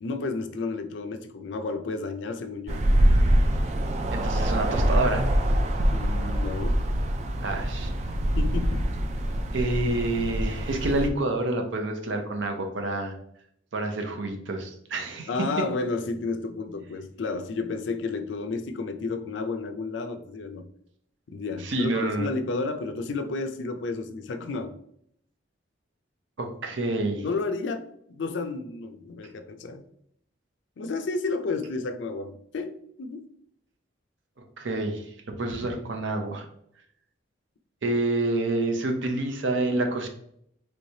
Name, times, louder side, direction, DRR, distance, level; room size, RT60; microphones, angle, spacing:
voice 1, 0.0-2.8 5.8-6.8 8.4-8.9 15.3-20.7 21.3-24.7 27.2-29.8 30.8-33.3, left 3 dB, 70° left, 8 dB, 0.4 m, -32 dB
sound 1, 2.7-11.1, equal, 35° right, 0.3 m, -24 dB
voice 2, 4.1-5.2 7.4-7.9 9.5-13.1 13.7-15.5 21.6-22.3 26.4-27.2 34.4-36.5 37.8-40.1, right 2 dB, 75° right, 4 dB, 0.6 m, -28 dB
3.2 x 3.1 x 2.7 m, 0.70 s
head